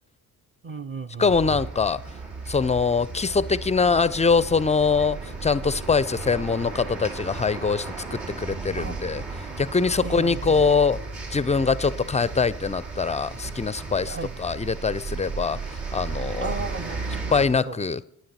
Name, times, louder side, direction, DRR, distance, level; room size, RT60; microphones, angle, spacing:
voice 1, 0.6-1.6 8.8-9.3 10.0-10.7 14.0-14.3 16.4-17.8, right 4 dB, 25° right, 5 dB, 0.6 m, -35 dB
voice 2, 1.2-2.0 2.5-11.0 11.3-15.6 15.9-16.5 17.3-18.0, left 5 dB, 15° left, 19 dB, 0.4 m, -23 dB
sound 1, 1.2-17.5, right 4 dB, 75° right, 2.7 m, -35 dB
11.5 x 9.6 x 4.3 m, 0.76 s
hypercardioid pair, 40°, 44 cm